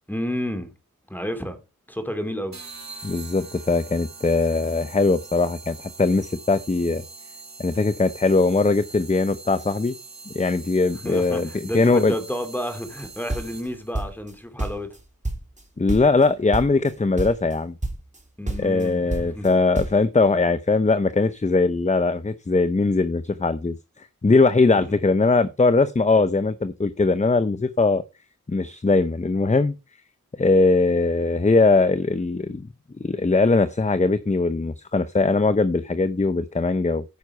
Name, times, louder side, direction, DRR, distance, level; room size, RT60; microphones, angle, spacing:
voice 1, 0.1-0.7 1.1-1.6 1.9-2.6 11.0-14.9 18.4-19.5 24.8-25.0, equal, 5° left, 2.6 m, -31 dB
sound 1, 2.5-13.9, right 4 dB, 55° right, 1.7 m, -43 dB
voice 2, 3.0-7.0 7.6-9.9 10.3-12.1 15.8-17.7 18.6-28.0 28.5-29.7 30.4-32.7 33.0-37.0, left 3 dB, 20° left, 0.7 m, -20 dB
sound 2, 13.0-14.3 14.6-15.6 15.9-16.3 16.5-16.9 17.2-17.6 17.8-18.2 18.5-20.0, right 2 dB, 20° right, 2.5 m, -29 dB
9.5 x 6.0 x 5.5 m
cardioid pair, 55°, 33 cm